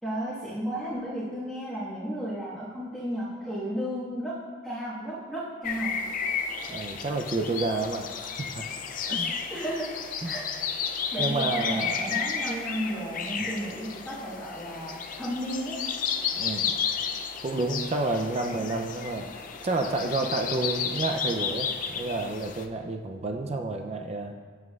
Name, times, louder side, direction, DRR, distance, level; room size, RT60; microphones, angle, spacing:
voice 1, 0.0-4.3 4.6-6.0 9.5-9.9 10.2-10.4 11.1-15.8, equal, ahead, -13 dB, 1.4 m, -33 dB
sound 1, 5.6-22.7, left 6 dB, 45° left, 0.4 m, -32 dB
voice 2, 6.7-8.7 9.1-9.4 10.2-10.4 11.2-12.1 16.3-16.7 17.4-24.3, right 2 dB, 35° right, 4 dB, 0.4 m, -30 dB
7.8 x 7.4 x 2.3 m, 1.5 s
head